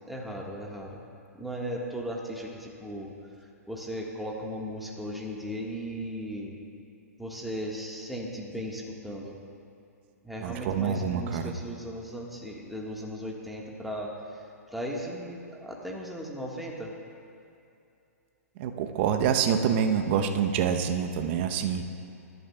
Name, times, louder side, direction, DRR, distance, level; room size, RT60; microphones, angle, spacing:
voice 1, 0.1-1.0 1.3-3.1 3.7-6.5 7.2-9.4 10.2-14.4 14.7-16.9, equal, ahead, -2 dB, 1.6 m, -36 dB
voice 2, 10.4-11.5 18.6-21.8, right 7 dB, 45° right, 6 dB, 0.9 m, -26 dB
20.0 x 12.0 x 2.4 m, 2.6 s
hypercardioid pair, 120°, 8 cm